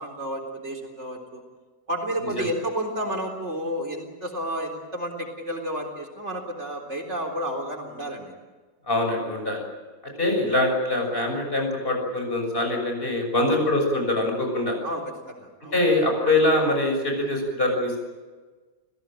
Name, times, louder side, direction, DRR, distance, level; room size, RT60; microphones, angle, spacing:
voice 1, 0.0-1.4 1.9-8.3 13.4-13.6 14.8-15.8, equal, 55° right, 2 dB, 4.2 m, -31 dB
voice 2, 8.9-9.6 10.2-14.8 15.7-18.0, left 2 dB, 40° left, 2 dB, 6.8 m, -23 dB
30.0 x 17.5 x 9.0 m, 1.3 s
omnidirectional pair, 1.5 m